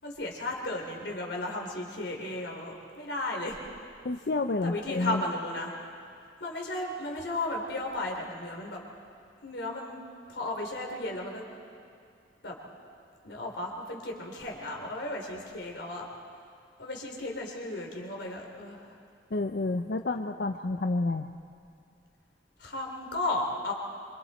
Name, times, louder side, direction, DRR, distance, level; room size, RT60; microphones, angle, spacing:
voice 1, 0.0-3.6 4.6-5.7 6.4-8.8 9.4-10.0 10.3-11.4 12.4-12.6 13.2-16.1 16.8-19.0 22.6-23.7, left 2 dB, 90° left, 0 dB, 3.7 m, -34 dB
voice 2, 4.0-5.2 19.3-21.4, left 2 dB, 60° left, 6 dB, 0.6 m, -29 dB
26.5 x 25.5 x 4.4 m, 2.5 s
head